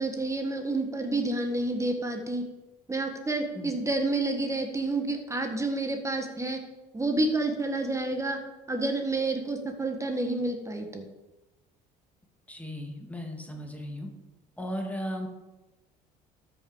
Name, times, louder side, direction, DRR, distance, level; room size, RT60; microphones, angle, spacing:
voice 1, 0.0-2.5 2.9-6.6 6.9-8.4 8.7-11.1, right 2 dB, 15° right, 5 dB, 1.5 m, -29 dB
voice 2, 12.5-14.1 14.6-15.3, equal, 10° left, 3 dB, 1.8 m, -36 dB
12.5 x 5.7 x 4.9 m, 1.1 s
supercardioid pair, 80°, 18 cm